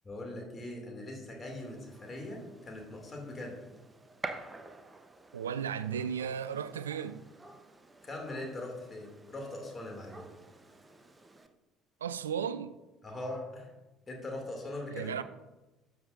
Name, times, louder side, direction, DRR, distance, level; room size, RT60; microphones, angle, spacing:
voice 1, 0.0-3.6 8.0-10.3 13.0-13.7 14.1-15.1, left 1 dB, 25° left, 2.5 m, -41 dB
Gunshot gunfire, 1.5-11.5, right 3 dB, 20° right, 0.8 m, -49 dB
voice 2, 5.3-7.3 12.0-12.8 14.9-15.2, right 8 dB, 75° right, 0.3 m, -35 dB
12.5 x 7.0 x 2.6 m
figure-of-eight pair, 55°, 0 cm